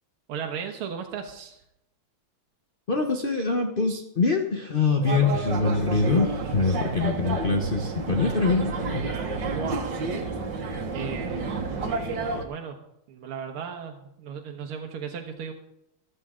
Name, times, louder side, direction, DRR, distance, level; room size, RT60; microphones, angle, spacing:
voice 1, 0.3-1.6 9.5-10.0 10.9-11.6 12.4-12.8 13.1-15.5, right 7 dB, 80° right, 3 dB, 2.1 m, -36 dB
voice 2, 2.9-9.0, left 4 dB, 45° left, 4 dB, 0.7 m, -24 dB
sound 1, 5.0-12.4, right 3 dB, 60° right, 2.0 m, -30 dB
14.5 x 13.0 x 3.7 m, 0.78 s
omnidirectional pair, 2.4 m